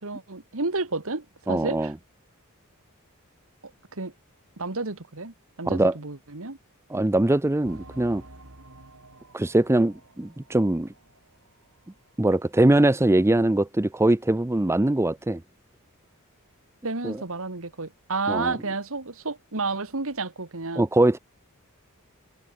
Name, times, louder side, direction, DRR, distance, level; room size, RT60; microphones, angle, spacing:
voice 1, 0.0-1.9 3.9-4.1 4.6-6.6 16.8-20.8, right 3 dB, 70° right, 2.1 m, -31 dB
voice 2, 1.5-1.9 5.7-6.0 6.9-8.2 9.3-10.9 12.2-15.4 17.0-17.2 18.3-18.5 20.8-21.2, right 1 dB, 10° right, 0.5 m, -22 dB
sound 1, 7.6-11.9 12.2-12.3 12.9-13.0, right 2 dB, 85° right, 5.9 m, -50 dB
head